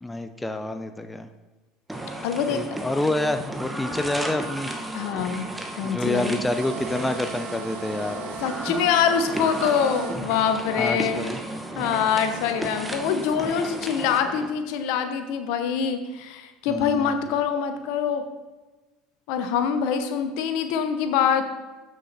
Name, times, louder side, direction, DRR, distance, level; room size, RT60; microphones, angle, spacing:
voice 1, 0.0-1.3 2.5-4.7 5.8-8.4 10.8-11.4 16.7-17.3, left 2 dB, 10° left, 9 dB, 0.5 m, -28 dB
sound 1, 1.9-14.5, right 1 dB, 10° right, 1.0 m, -34 dB
voice 2, 2.2-2.6 4.9-5.5 5.8-6.4 8.4-11.3 11.8-18.2 19.3-21.4, left 7 dB, 70° left, 8 dB, 0.8 m, -24 dB
sound 2, 6.5-10.2, right 8 dB, 70° right, 1.0 m, -37 dB
7.7 x 6.3 x 4.1 m, 1.2 s
supercardioid pair, 90°, 0 cm